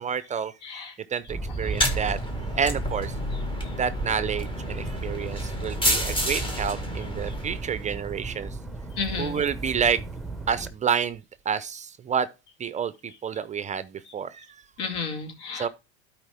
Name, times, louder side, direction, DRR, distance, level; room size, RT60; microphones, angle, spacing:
voice 1, 0.0-0.8 1.1-2.2 2.5-3.2 3.8-8.6 9.2-10.0 10.5-12.3 12.6-14.5 15.5-15.7, right 7 dB, 20° right, 0.5 m, -29 dB
voice 2, 0.6-0.9 1.6-1.8 3.6-3.7 9.0-9.4 14.8-15.7, left 5 dB, 80° left, 2.7 m, -32 dB
sound 1, 1.3-10.7, right 3 dB, ahead, 0.9 m, -35 dB
sound 2, 1.6-8.0, left 1 dB, 15° left, 1.8 m, -30 dB
12.5 x 4.9 x 3.4 m
supercardioid pair, 115°, 33 cm